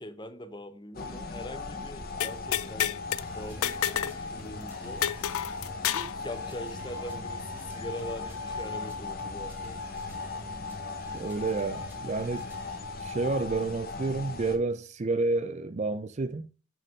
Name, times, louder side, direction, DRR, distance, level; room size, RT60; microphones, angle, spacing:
voice 1, 0.0-2.9 3.3-5.1 5.9-9.8, left 1 dB, 20° left, 0.9 m, -42 dB
sound 1, 0.9-14.6, left 3 dB, 45° left, 1.1 m, -38 dB
sound 2, 2.2-3.2 3.6-4.2 4.5-4.6 5.0-6.2, left 11 dB, 75° left, 0.4 m, -29 dB
sound 3, 3.2-12.8, right 1 dB, 10° right, 1.9 m, -50 dB
voice 2, 11.1-12.5 13.0-16.5, right 3 dB, 30° right, 0.4 m, -30 dB
6.7 x 6.4 x 5.3 m
head